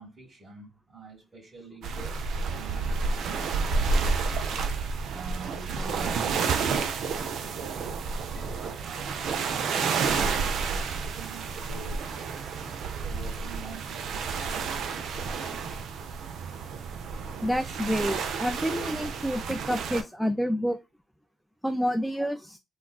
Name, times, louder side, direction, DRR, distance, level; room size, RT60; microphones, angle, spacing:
voice 1, 0.0-4.4 5.1-9.3 9.6-12.4 12.7-15.2 22.2-22.3, right 3 dB, 30° right, 1.9 m, -47 dB
sound 1, 1.8-20.0, right 5 dB, 75° right, 0.5 m, -30 dB
voice 2, 17.4-20.8 21.6-22.4, equal, ahead, 0.3 m, -28 dB
3.6 x 2.4 x 2.3 m
supercardioid pair, 60°, 0 cm